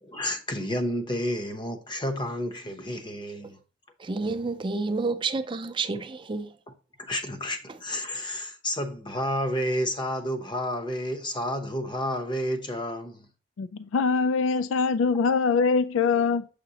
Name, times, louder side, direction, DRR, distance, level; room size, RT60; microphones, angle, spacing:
voice 1, 0.0-3.6 7.0-13.3, equal, 25° left, 0.8 m, -30 dB
voice 2, 4.0-6.5, right 3 dB, 25° right, 0.4 m, -29 dB
voice 3, 13.6-16.5, left 5 dB, 85° left, 0.4 m, -23 dB
7.1 x 5.0 x 2.8 m
head